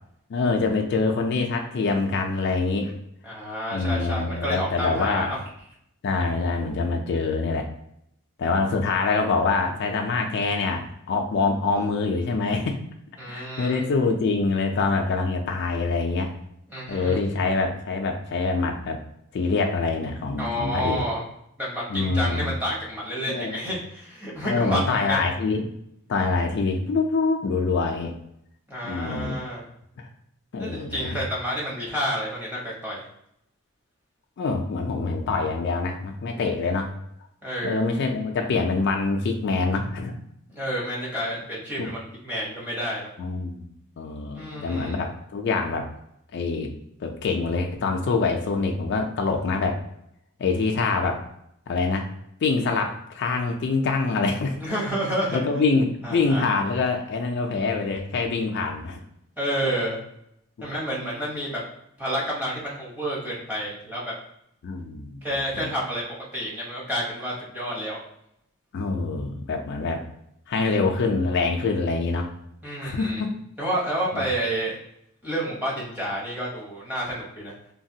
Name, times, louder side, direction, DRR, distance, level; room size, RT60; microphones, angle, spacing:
voice 1, 0.3-2.9 3.7-5.3 6.0-7.7 8.4-12.8 13.3-16.3 16.9-19.0 19.3-21.0 21.9-22.5 23.3-23.6 24.4-25.7 26.1-28.1 28.8-29.4 30.5-31.2 34.4-36.9 37.6-40.2 41.8-41.9 43.2-43.7 44.0-45.9 46.3-46.7 47.0-49.8 50.4-51.2 51.7-52.1 52.4-54.6 55.3-59.0 64.6-65.2 65.5-65.7 68.7-70.0 70.5-72.3 72.8-73.3 74.1-74.2, left 4 dB, 50° left, 2 dB, 0.3 m, -25 dB
voice 2, 3.2-5.4 13.2-13.8 16.7-17.2 20.4-21.2 21.6-25.3 28.7-29.6 30.6-33.0 37.4-37.8 40.5-43.1 44.3-45.0 54.6-55.4 56.0-56.5 59.4-60.0 60.6-61.6 62.0-64.1 65.2-68.0 72.6-73.2 73.6-74.8 75.2-77.5, equal, 10° right, -6 dB, 0.8 m, -29 dB
3.2 x 2.2 x 2.7 m, 0.76 s
head